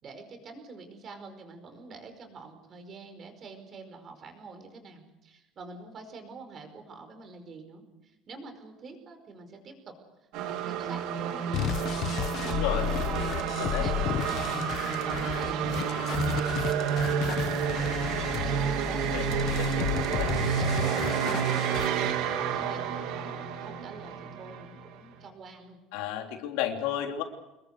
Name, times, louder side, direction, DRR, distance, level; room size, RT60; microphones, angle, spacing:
voice 1, 0.0-10.0 10.4-19.2 19.4-25.8, right 4 dB, 30° right, 7 dB, 5.1 m, -46 dB
sound 1, 10.3-25.2, right 7 dB, 70° right, 3.4 m, -30 dB
sound 2, 11.5-21.9, left 10 dB, 50° left, 1.4 m, -33 dB
voice 2, 12.4-12.8 13.6-13.8 19.1-19.3 19.6-19.8 20.2-20.3 25.9-27.2, left 11 dB, 90° left, 3 dB, 3.5 m, -32 dB
27.5 x 21.5 x 6.8 m, 0.94 s
cardioid pair, 155°, 0 cm